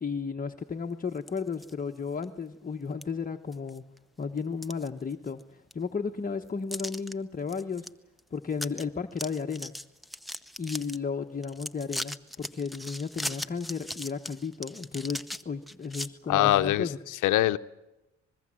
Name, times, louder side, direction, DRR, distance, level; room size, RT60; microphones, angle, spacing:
voice 1, 0.0-3.9 4.2-7.9 8.3-9.7 10.6-17.0, left 5 dB, 30° left, 1.1 m, -34 dB
sound 1, 1.1-1.7 2.2-2.3 3.0-3.1 3.5-4.0 4.4-5.4 5.7-5.8 6.7-7.1 7.5-7.9 8.2-8.3 8.5-8.8 9.1-11.0 11.4-16.1, left 1 dB, ahead, 0.8 m, -38 dB
voice 2, 16.3-17.6, left 15 dB, 85° left, 0.7 m, -24 dB
24.5 x 22.0 x 7.6 m
cardioid pair, 90°, 30 cm